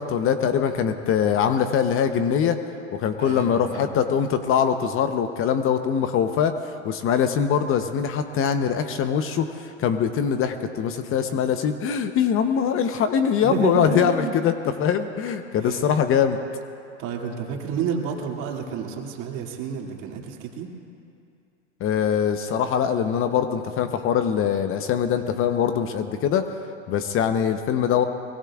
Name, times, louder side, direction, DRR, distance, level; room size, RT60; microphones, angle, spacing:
voice 1, 0.0-2.6 2.9-16.4 21.8-26.5 26.9-28.0, left 8 dB, 35° left, 8 dB, 0.9 m, -23 dB
voice 2, 3.2-4.0 13.4-14.3 15.6-15.8 17.0-20.7, right 7 dB, 50° right, 0 dB, 2.5 m, -30 dB
22.5 x 22.5 x 2.4 m, 2.4 s
hypercardioid pair, 100°, 37 cm